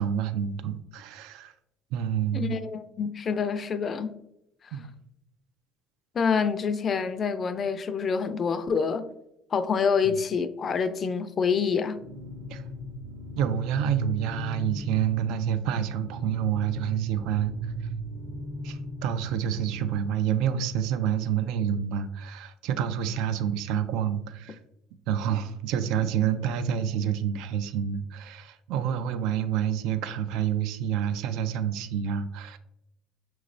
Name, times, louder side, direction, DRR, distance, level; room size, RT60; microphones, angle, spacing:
voice 1, 0.0-1.5 1.9-2.6 4.7-4.9 10.1-10.2 12.5-12.6 13.4-17.7 18.6-24.6 25.1-32.6, right 9 dB, 75° right, 0.3 m, -28 dB
voice 2, 2.3-4.1 6.1-9.1 9.5-12.0, left 6 dB, 35° left, 0.4 m, -27 dB
sound 1, 12.0-19.9, right 1 dB, 45° right, 0.8 m, -38 dB
5.8 x 3.1 x 2.5 m
cardioid pair, 110°, 0 cm